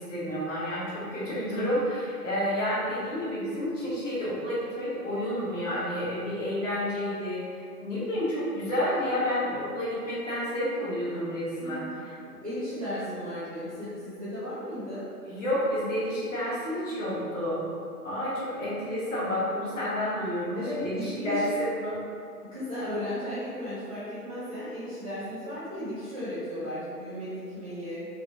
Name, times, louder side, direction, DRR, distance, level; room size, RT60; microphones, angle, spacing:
voice 1, 0.0-7.4 7.8-12.1 15.2-17.7 18.0-22.0, equal, 50° left, -9 dB, 1.1 m, -30 dB
voice 2, 12.2-15.0 20.5-21.4 22.4-28.1, left 1 dB, 25° right, -13 dB, 0.5 m, -35 dB
2.6 x 2.1 x 2.7 m, 2.3 s
figure-of-eight pair, 135°, 47 cm